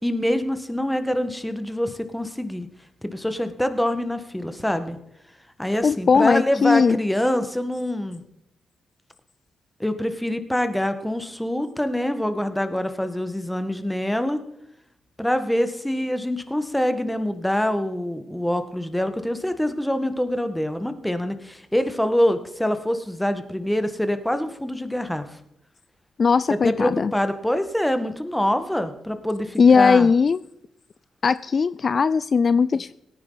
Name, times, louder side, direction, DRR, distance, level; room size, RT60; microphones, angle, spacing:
voice 1, 0.0-2.7 3.0-5.0 5.6-8.2 9.8-14.4 15.2-25.2 26.5-30.1, left 1 dB, 5° left, 9 dB, 1.6 m, -25 dB
voice 2, 5.8-7.0 26.2-27.1 29.6-30.4 31.2-32.9, left 5 dB, 50° left, 16 dB, 0.3 m, -18 dB
17.5 x 9.7 x 4.1 m, 0.82 s
hypercardioid pair, 40°, 0 cm